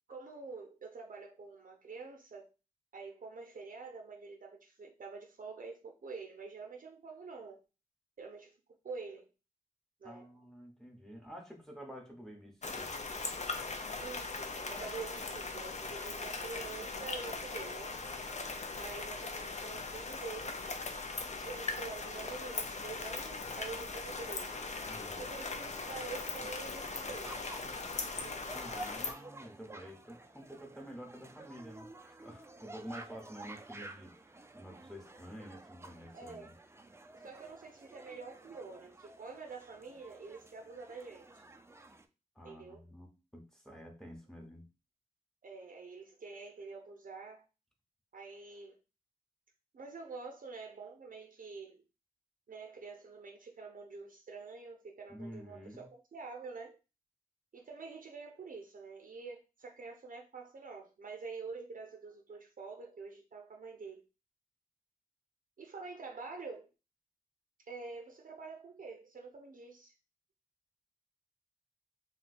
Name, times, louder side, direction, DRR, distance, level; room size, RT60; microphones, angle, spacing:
voice 1, 0.1-2.5 2.9-7.6 8.2-8.6 8.8-9.3 10.0-10.3 14.0-17.9 18.8-20.6 21.4-24.5 25.2-27.5 28.1-28.5 33.8-33.9 36.1-36.5 37.1-41.4 42.4-42.8 45.4-47.4 48.1-48.8 49.7-51.8 52.5-56.8 57.5-64.0 65.6-66.7 67.7-69.9, right 4 dB, 60° right, 0.6 m, -47 dB
voice 2, 10.0-12.9 24.9-25.3 28.5-36.6 42.3-44.7 55.1-55.9, equal, 5° left, 0.9 m, -49 dB
sound 1, 12.6-29.1, left 3 dB, 50° left, 0.5 m, -40 dB
sound 2, 25.4-42.1, right 2 dB, 15° right, 0.4 m, -52 dB
2.7 x 2.2 x 4.1 m
wide cardioid pair, 65°, 15 cm